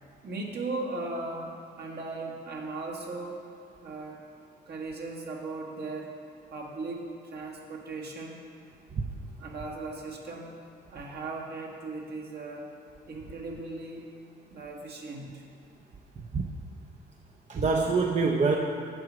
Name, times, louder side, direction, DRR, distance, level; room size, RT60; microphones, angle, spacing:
voice 1, 0.2-3.4 3.8-4.2 4.7-6.2 6.5-8.4 9.4-10.6 10.9-12.7 13.1-14.1 14.5-15.4, right 3 dB, 55° right, -1 dB, 1.5 m, -37 dB
voice 2, 17.5-18.6, right 4 dB, 35° right, 1 dB, 0.6 m, -25 dB
7.7 x 4.9 x 7.2 m, 2.3 s
cardioid pair, 90°, 20 cm